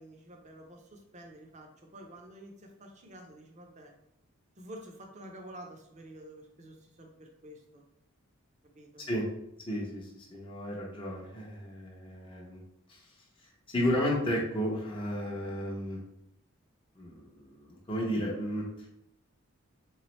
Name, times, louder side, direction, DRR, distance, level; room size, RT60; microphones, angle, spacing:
voice 1, 0.0-3.9 4.6-7.8 8.7-9.1, right 1 dB, 35° right, 2 dB, 0.6 m, -49 dB
voice 2, 9.7-12.6 12.9-13.0 13.7-16.0 17.0-18.7, equal, 25° left, -3 dB, 0.6 m, -33 dB
3.4 x 3.1 x 3.0 m, 0.80 s
head